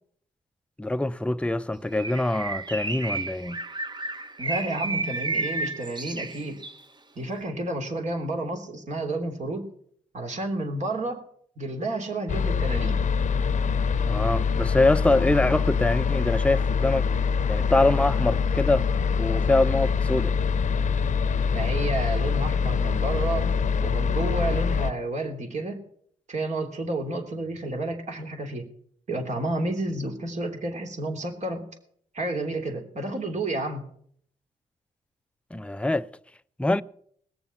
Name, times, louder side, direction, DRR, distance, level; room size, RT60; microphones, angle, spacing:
voice 1, 0.8-3.6 14.0-17.0 17.5-18.9 19.2-20.3 35.5-36.1 36.6-36.8, left 2 dB, 10° left, 0.6 m, -24 dB
Bird, 1.9-6.8, right 3 dB, 30° right, 1.2 m, -32 dB
voice 2, 4.4-6.6 7.1-9.7 10.1-11.2 11.6-12.9 21.5-23.5 23.8-25.8 26.3-28.7 29.1-31.7 32.1-33.8, right 2 dB, 50° right, 3.3 m, -30 dB
sound 1, 12.3-24.9, left 5 dB, 55° left, 0.7 m, -24 dB
20.0 x 7.1 x 5.9 m
supercardioid pair, 60°, 15 cm